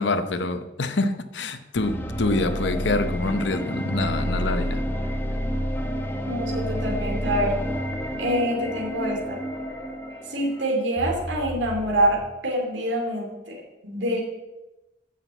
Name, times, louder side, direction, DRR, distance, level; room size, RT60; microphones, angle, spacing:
voice 1, 0.0-4.8, left 2 dB, 65° left, 0.8 m, -26 dB
sound 1, 1.8-10.8, equal, 10° left, 1.0 m, -29 dB
sound 2, 3.8-12.2, equal, 25° right, 3.7 m, -41 dB
voice 2, 6.2-7.5 8.2-9.4 10.3-14.2, right 1 dB, 70° right, 2.6 m, -26 dB
9.6 x 5.9 x 8.0 m
head